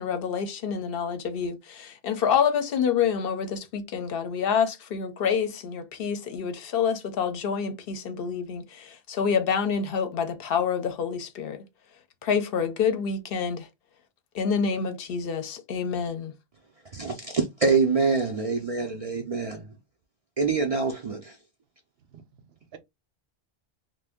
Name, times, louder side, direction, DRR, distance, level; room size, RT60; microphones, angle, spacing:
voice 1, 0.0-11.6 12.2-13.7 14.3-16.4, left 6 dB, 65° left, 0.8 m, -27 dB
voice 2, 16.9-19.6 20.4-21.4, right 4 dB, 50° right, 0.4 m, -25 dB
voice 3, 22.1-22.8, right 8 dB, 80° right, 0.8 m, -50 dB
2.5 x 2.1 x 3.5 m
omnidirectional pair, 1.1 m